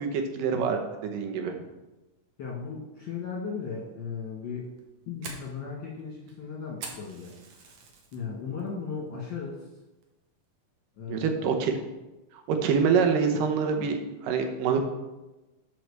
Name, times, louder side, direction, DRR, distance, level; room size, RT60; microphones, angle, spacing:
voice 1, 0.0-1.6 11.1-11.8 12.5-14.0 14.2-14.8, right 6 dB, 90° right, 4 dB, 2.6 m, -25 dB
voice 2, 2.4-4.7 5.1-7.3 8.1-9.7 10.9-11.5 13.8-13.9, left 5 dB, 50° left, -3 dB, 1.6 m, -36 dB
Fire, 4.6-8.2 8.6-9.0 9.4-9.5 10.0-10.4, right 4 dB, 65° right, 2.2 m, -44 dB
7.7 x 4.8 x 6.6 m, 1.0 s
omnidirectional pair, 3.7 m